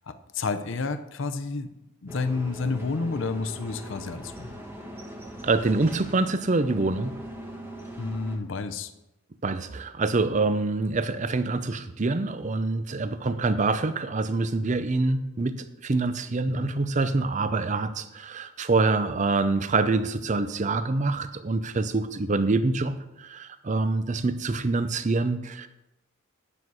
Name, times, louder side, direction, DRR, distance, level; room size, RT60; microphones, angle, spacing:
voice 1, 0.0-1.7 2.0-4.6 8.0-8.9 16.5-16.8, left 3 dB, 55° left, 10 dB, 0.6 m, -30 dB
sound 1, 2.1-8.4, equal, 10° right, 1.0 m, -41 dB
voice 2, 5.4-7.1 9.4-15.5 15.8-25.7, right 3 dB, 35° right, 11 dB, 0.5 m, -25 dB
9.7 x 7.8 x 4.7 m, 0.93 s
head